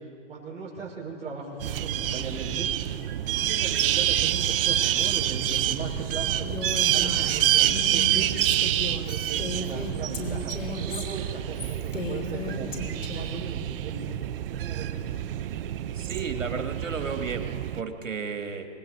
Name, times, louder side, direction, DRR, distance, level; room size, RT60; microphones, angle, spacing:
voice 1, 0.0-2.7 3.3-8.3 8.8-12.7 13.1-14.2 14.5-15.2, right 4 dB, 15° right, -4 dB, 5.5 m, -38 dB
sound 1, 1.6-17.8, right 11 dB, 45° right, 0.8 m, -27 dB
Female speech woman speaking, 6.4-13.4, left 3 dB, 85° left, 3.3 m, -36 dB
voice 2, 15.9-18.7, right 5 dB, 85° right, 5 dB, 2.2 m, -33 dB
25.5 x 19.5 x 5.3 m, 2.3 s
hypercardioid pair, 125°, 37 cm